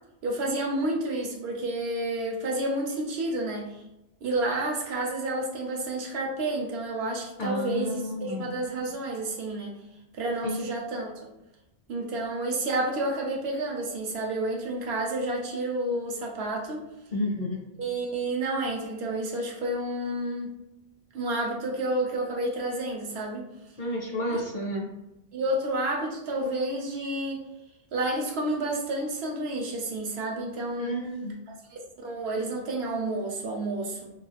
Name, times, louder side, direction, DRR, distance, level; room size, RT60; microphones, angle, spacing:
voice 1, 0.2-3.8 4.2-9.7 10.1-11.3 11.9-16.8 17.8-20.5 21.1-23.4 24.3-24.4 25.3-27.4 27.9-31.0 31.5-34.1, right 1 dB, 70° right, 0 dB, 0.8 m, -30 dB
voice 2, 7.4-8.5 10.4-10.7 17.1-17.6 23.8-24.8 30.8-31.3, left 1 dB, 55° left, -2 dB, 0.6 m, -31 dB
2.4 x 2.3 x 3.2 m, 0.91 s
omnidirectional pair, 1.2 m